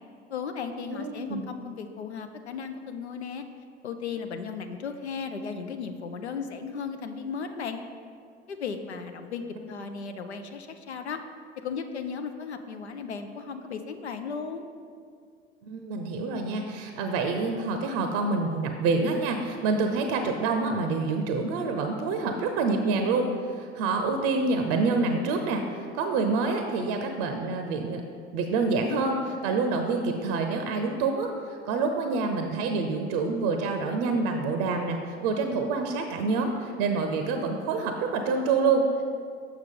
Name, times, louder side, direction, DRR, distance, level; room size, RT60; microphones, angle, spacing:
voice 1, 0.3-3.4 3.8-7.8 8.5-11.2 11.6-14.7, left 5 dB, 90° left, 7 dB, 0.5 m, -35 dB
voice 2, 0.9-1.4 15.6-28.0 28.3-31.3 31.6-39.0, right 4 dB, 55° right, 5 dB, 0.6 m, -27 dB
6.5 x 6.0 x 3.7 m, 2.2 s
figure-of-eight pair, 70°, 32 cm